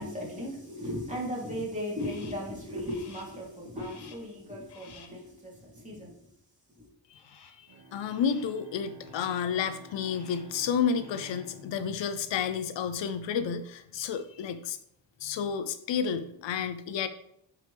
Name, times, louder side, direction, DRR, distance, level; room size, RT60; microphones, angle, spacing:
voice 1, 0.0-6.3 6.7-6.9, equal, 15° right, -5 dB, 3.2 m, -37 dB
Crow, 2.0-2.5 2.9-3.4 3.8-4.4 4.7-5.3 7.2-7.7 8.1-8.6 9.0-9.6 10.0-10.6 10.9-11.5, left 6 dB, 65° left, 1.0 m, -55 dB
voice 2, 7.6-14.8 15.2-17.1, left 7 dB, 90° left, 11 dB, 0.7 m, -31 dB
Bowed string instrument, 7.7-13.2, left 1 dB, 60° right, 1.2 m, -51 dB
9.5 x 4.8 x 3.4 m, 0.71 s
cardioid pair, 100°, 43 cm